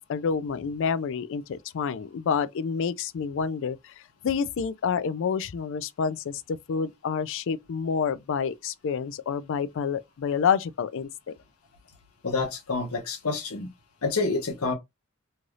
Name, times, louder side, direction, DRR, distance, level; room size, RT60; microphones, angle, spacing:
voice 1, 0.0-3.9 4.2-11.3, left 6 dB, 60° left, 0.4 m, -28 dB
voice 2, 12.2-13.7 14.0-14.7, left 3 dB, 85° left, 1.0 m, -28 dB
3.2 x 2.6 x 2.3 m
head